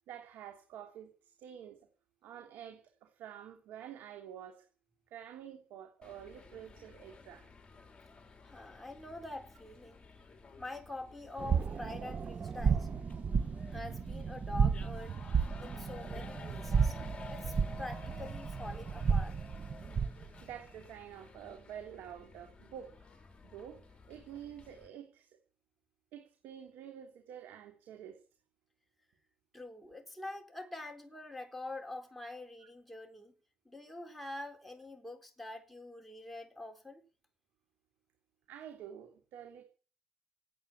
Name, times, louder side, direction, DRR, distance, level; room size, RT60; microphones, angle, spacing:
voice 1, 0.1-1.8 2.2-4.6 5.1-7.5 20.4-22.9 23.5-23.8 24.1-25.3 26.1-28.2 38.5-39.6, right 9 dB, 85° right, 3.1 m, -48 dB
sound 1, 6.0-24.9, left 4 dB, 30° left, 3.9 m, -53 dB
voice 2, 8.4-10.0 10.6-12.9 13.7-15.2 15.6-17.0 17.3-19.5 29.5-33.3 33.6-37.0, left 2 dB, 5° left, 4.1 m, -45 dB
sound 2, 11.4-20.3, right 6 dB, 45° right, 1.2 m, -33 dB
18.5 x 9.0 x 8.6 m
cardioid pair, 75°, 3 cm